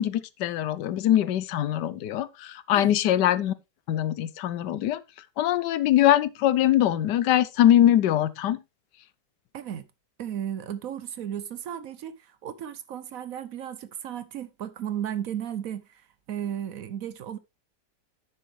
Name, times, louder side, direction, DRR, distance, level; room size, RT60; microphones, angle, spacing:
voice 1, 0.0-3.5 3.9-5.0 5.4-8.6, left 12 dB, 85° left, 1.3 m, -22 dB
voice 2, 9.5-9.9 10.2-17.4, right 10 dB, 65° right, 1.0 m, -35 dB
10.0 x 7.4 x 3.2 m
omnidirectional pair, 1.8 m